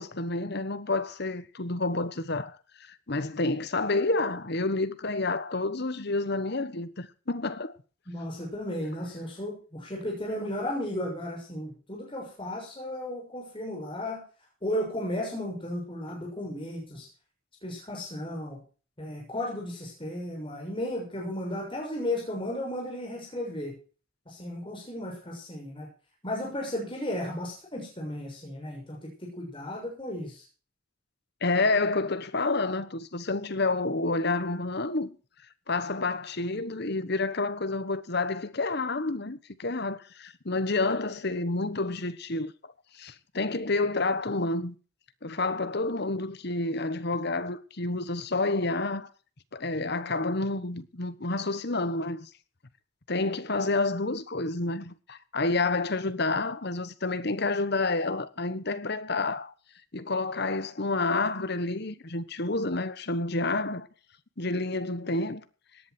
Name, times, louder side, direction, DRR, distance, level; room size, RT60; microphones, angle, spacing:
voice 1, 0.0-2.6 2.9-7.8 31.4-35.2 35.7-42.5 43.0-44.7 45.2-49.1 49.5-52.3 53.1-59.5 59.9-63.9 64.4-65.4, left 3 dB, 50° left, 1.2 m, -29 dB
voice 2, 8.1-14.2 14.6-17.1 17.6-18.6 19.0-23.7 24.3-25.9 26.2-30.4, left 1 dB, 25° left, 6.5 m, -34 dB
18.0 x 11.0 x 4.4 m
head